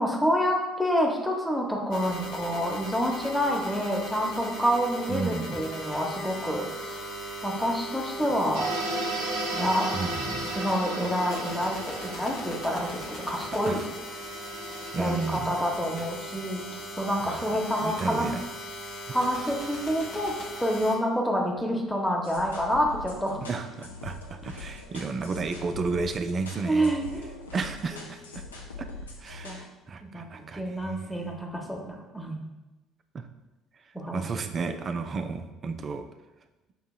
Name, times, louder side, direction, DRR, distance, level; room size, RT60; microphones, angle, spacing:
voice 1, 0.0-7.0 7.4-8.7 9.5-9.9 10.4-13.8 14.9-16.6 17.0-18.3 19.1-20.3 20.6-23.4 26.6-27.3 27.9-28.0 29.4-29.6 30.0-30.3 30.5-32.4 33.9-34.2, equal, 5° left, 0 dB, 0.8 m, -28 dB
sound 1, 1.9-21.0, right 1 dB, 55° left, 0.8 m, -38 dB
voice 2, 5.1-5.6 9.9-10.5 13.7-13.8 14.9-15.5 17.2-17.5 17.8-18.4 23.4-27.0 27.5-28.4 29.2-31.3 33.1-33.3 34.1-36.0, right 4 dB, 35° right, 8 dB, 0.3 m, -32 dB
sound 2, 8.5-15.4, right 1 dB, 80° right, 0.6 m, -35 dB
sound 3, 22.2-29.6, left 3 dB, 80° left, 0.4 m, -42 dB
6.0 x 2.7 x 2.3 m, 1.1 s
figure-of-eight pair, 55°, 0 cm